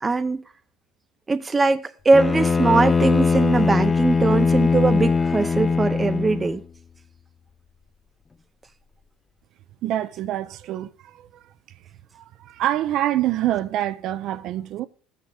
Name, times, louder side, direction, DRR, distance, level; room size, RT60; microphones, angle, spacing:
voice 1, 0.0-0.4 1.3-6.6, right 3 dB, 15° right, 0.7 m, -21 dB
Bowed string instrument, 2.1-6.6, left 4 dB, 20° left, 0.4 m, -20 dB
voice 2, 9.8-11.3 12.1-14.9, right 13 dB, 55° right, 0.6 m, -26 dB
14.5 x 6.7 x 3.4 m
cardioid pair, 130°, 0 cm